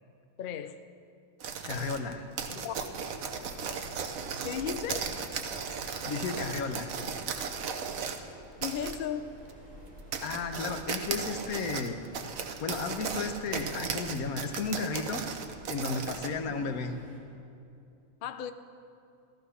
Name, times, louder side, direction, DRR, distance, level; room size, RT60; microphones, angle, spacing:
voice 1, 0.4-0.8 2.5-2.8 4.4-5.1 8.6-9.4 16.5-16.8 18.2-18.5, left 8 dB, 55° left, 10 dB, 0.6 m, -36 dB
sound 1, 1.4-8.2 8.6-9.0 9.5-9.6 10.0-16.3, right 6 dB, 70° right, 1.3 m, -36 dB
voice 2, 1.6-2.3 6.1-6.9 10.2-12.0 12.6-15.2 15.7-16.9, left 4 dB, 90° left, 7 dB, 1.4 m, -33 dB
Waves surf, 2.4-17.2, equal, 25° right, 3.6 m, -51 dB
14.5 x 13.0 x 5.6 m, 2.6 s
omnidirectional pair, 1.5 m